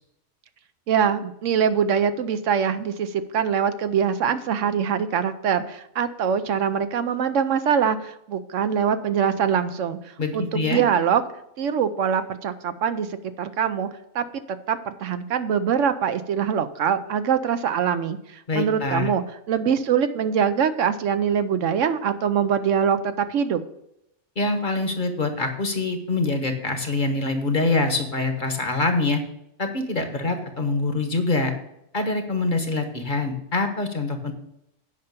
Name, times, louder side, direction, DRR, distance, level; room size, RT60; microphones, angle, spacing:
voice 1, 0.9-11.2 11.6-13.9 14.1-23.6, right 7 dB, 70° right, 10 dB, 1.0 m, -23 dB
voice 2, 10.2-10.8 18.5-19.1 24.4-29.2 29.6-31.5 31.9-34.3, left 3 dB, 40° left, 6 dB, 1.1 m, -25 dB
8.7 x 5.6 x 6.8 m, 0.80 s
omnidirectional pair, 1.4 m